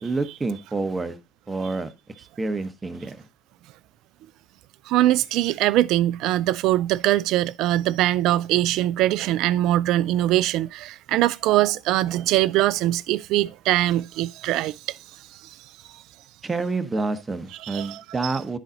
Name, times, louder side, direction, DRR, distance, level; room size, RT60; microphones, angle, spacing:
voice 1, 0.0-1.2 1.5-1.9 2.4-3.3 16.4-18.6, right 3 dB, 20° right, 1.0 m, -28 dB
voice 2, 4.9-15.0 15.4-15.6 17.6-18.3, right 14 dB, 65° right, 0.3 m, -22 dB
10.5 x 4.1 x 3.8 m
hypercardioid pair, 70°, 0 cm